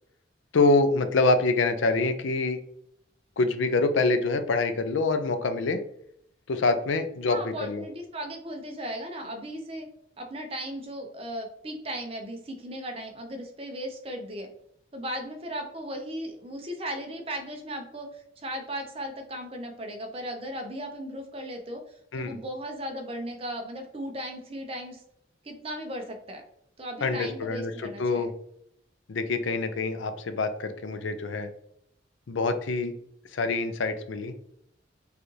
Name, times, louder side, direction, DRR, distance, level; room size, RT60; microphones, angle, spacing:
voice 1, 0.5-2.6 3.4-5.8 6.5-7.8 22.1-22.4 27.0-28.3 29.1-31.5 32.3-32.9 33.3-34.3, left 3 dB, 80° left, 9 dB, 0.5 m, -25 dB
voice 2, 7.3-9.9 10.2-14.5 14.9-21.8 22.1-25.0 25.4-26.4 26.8-28.3, equal, 30° right, 4 dB, 0.6 m, -36 dB
4.9 x 2.4 x 3.1 m, 0.72 s
head